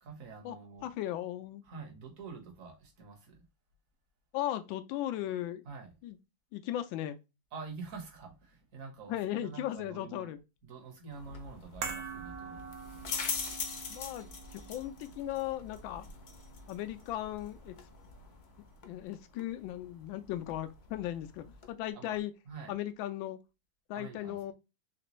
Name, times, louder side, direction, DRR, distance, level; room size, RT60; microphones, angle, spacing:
voice 1, 0.0-0.9 1.6-3.4 5.6-5.9 7.5-10.4 10.6-12.8 21.9-22.2 22.4-22.8 23.9-24.5, right 5 dB, 50° right, 1.4 m, -47 dB
voice 2, 0.8-1.6 4.3-5.6 6.0-6.2 6.5-7.2 9.1-10.4 13.9-16.0 16.7-17.7 18.9-22.3 22.7-23.4 23.9-24.5, left 13 dB, 80° left, 1.3 m, -37 dB
sound 1, 11.1-21.7, left 5 dB, 50° left, 0.8 m, -43 dB
sound 2, 11.8-18.2 18.5-18.6, right 6 dB, 75° right, 1.6 m, -46 dB
4.2 x 3.3 x 3.0 m
omnidirectional pair, 2.1 m